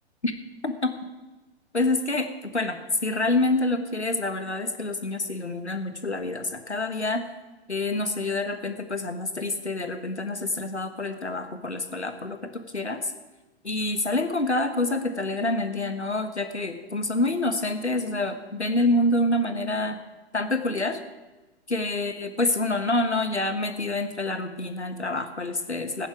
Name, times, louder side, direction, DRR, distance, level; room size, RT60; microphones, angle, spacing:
voice 1, 1.7-7.3 7.7-13.1 13.6-20.0 20.3-21.0 21.7-26.1, left 2 dB, 85° left, 8 dB, 1.4 m, -27 dB
15.5 x 10.5 x 5.0 m, 1.2 s
figure-of-eight pair, 115°, 33 cm